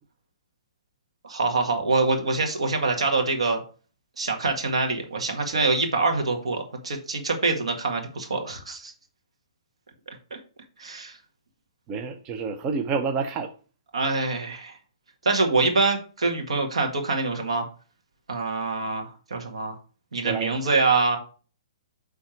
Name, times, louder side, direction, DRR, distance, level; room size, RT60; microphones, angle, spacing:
voice 1, 1.2-3.6 4.2-8.9 10.3-10.4 10.8-11.2 13.9-14.7 15.2-17.6 18.3-19.8 20.1-21.2, right 3 dB, 85° right, 1.8 m, -25 dB
voice 2, 11.9-13.5 20.2-20.7, right 5 dB, 25° right, 0.7 m, -29 dB
9.2 x 3.5 x 4.4 m
hypercardioid pair, 140°, 3 cm